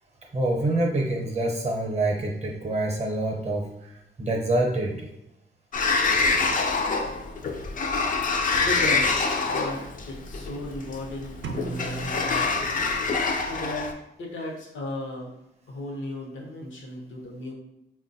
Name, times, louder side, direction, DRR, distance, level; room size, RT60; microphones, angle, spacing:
voice 1, 0.3-3.9 4.2-5.1, right 2 dB, 35° right, 1 dB, 0.6 m, -26 dB
Sliding door, 5.7-13.9, left 4 dB, 45° left, 0.4 m, -25 dB
voice 2, 8.6-9.8 10.1-12.5 13.5-13.9 14.2-15.3 15.7-17.5, left 1 dB, 80° left, 0 dB, 0.7 m, -35 dB
sound 1, 11.4-13.3, right 5 dB, 75° right, 0.4 m, -37 dB
3.6 x 2.2 x 2.6 m, 0.84 s
cardioid pair, 100°, 20 cm